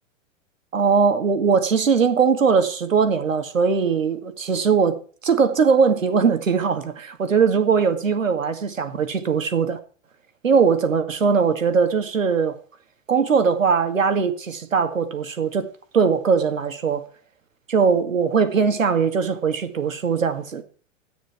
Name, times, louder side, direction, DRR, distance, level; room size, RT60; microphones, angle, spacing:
voice 1, 0.7-5.0 5.2-9.8 10.4-12.6 13.1-15.7 15.9-17.0 17.7-20.6, right 6 dB, 85° right, 2.2 m, -20 dB
13.5 x 9.9 x 4.5 m
hypercardioid pair, 105°, 38 cm